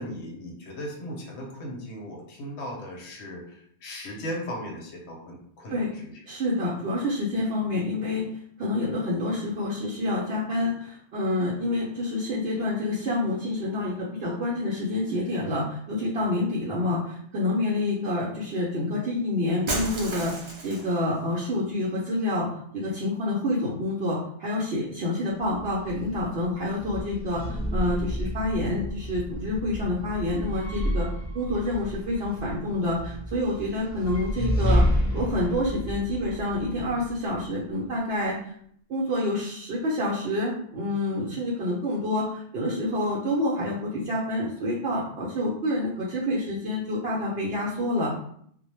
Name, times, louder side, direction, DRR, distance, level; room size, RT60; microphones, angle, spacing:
voice 1, 0.0-6.2, equal, 75° left, 0 dB, 0.8 m, -37 dB
voice 2, 6.3-8.3 8.6-20.3 20.6-22.5 22.7-31.1 31.3-34.8 35.1-38.4 38.9-48.2, left 1 dB, 65° right, -5 dB, 0.7 m, -28 dB
Shatter, 19.7-21.0, right 2 dB, 45° right, 0.3 m, -32 dB
sound 1, 25.3-37.5, equal, 25° left, 0.7 m, -30 dB
2.1 x 2.1 x 2.9 m, 0.65 s
omnidirectional pair, 1.2 m